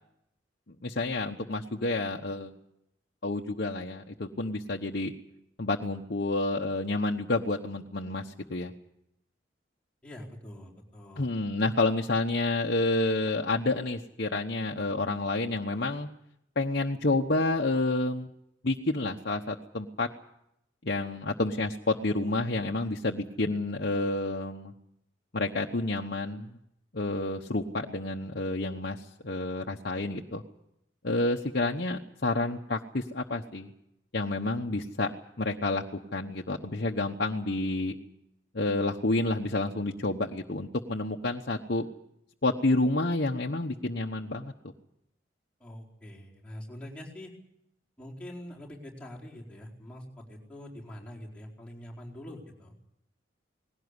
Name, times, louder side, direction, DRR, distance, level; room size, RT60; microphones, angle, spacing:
voice 1, 0.8-2.5 3.2-5.1 5.6-8.7 11.2-16.1 16.6-18.3 18.6-20.1 20.8-24.7 25.3-26.5 26.9-30.4 31.0-33.7 34.1-35.1 35.4-35.8 36.1-37.9 38.5-41.9 42.4-44.5, left 2 dB, 55° left, 0 dB, 1.1 m, -29 dB
voice 2, 10.0-11.3 45.6-47.3 48.0-52.7, left 1 dB, 5° left, -4 dB, 4.4 m, -44 dB
20.0 x 17.0 x 9.7 m, 0.80 s
head